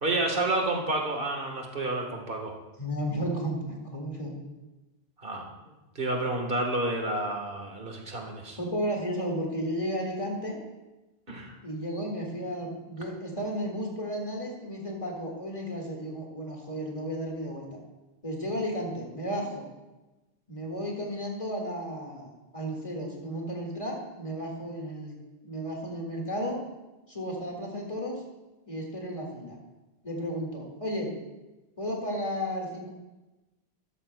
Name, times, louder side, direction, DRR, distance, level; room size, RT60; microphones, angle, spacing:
voice 1, 0.0-2.5 5.2-5.4 5.9-8.6 11.3-11.5, right 2 dB, 50° right, 2 dB, 1.6 m, -30 dB
voice 2, 2.8-3.6 3.8-4.3 8.6-10.6 11.6-17.8 18.2-19.7 20.5-25.1 25.4-26.6 27.1-28.2 28.7-29.6 30.0-31.1 31.8-32.9, equal, 30° left, -1 dB, 1.9 m, -33 dB
13.0 x 12.5 x 2.2 m, 1.1 s
omnidirectional pair, 1.2 m